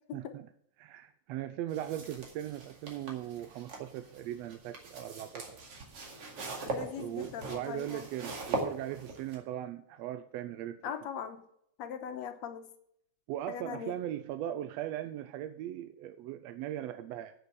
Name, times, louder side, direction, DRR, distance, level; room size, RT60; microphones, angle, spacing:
voice 1, 0.1-0.5 0.8-5.5 7.0-10.8 13.3-17.3, right 12 dB, 75° right, 10 dB, 1.6 m, -39 dB
sound 1, 1.7-9.4, right 3 dB, 55° right, 3.0 m, -41 dB
voice 2, 6.7-8.1 10.8-11.4 11.8-12.7 13.5-14.0, left 8 dB, 70° left, 8 dB, 2.2 m, -40 dB
9.6 x 8.1 x 7.0 m, 0.70 s
omnidirectional pair, 3.3 m